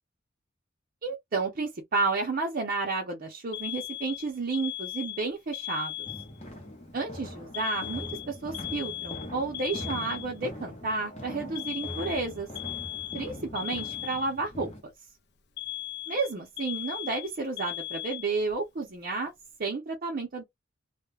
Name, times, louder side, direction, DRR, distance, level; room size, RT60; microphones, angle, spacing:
voice 1, 1.0-6.1 6.9-12.5 13.1-14.9 16.1-19.3 19.6-20.4, right 3 dB, 45° right, 0.6 m, -31 dB
Alarm, 3.5-6.5 7.5-10.5 11.5-14.5 15.6-18.5, left 15 dB, 55° left, 0.5 m, -37 dB
sound 1, 6.0-14.8, equal, 35° left, 0.9 m, -42 dB
2.3 x 2.1 x 3.2 m
head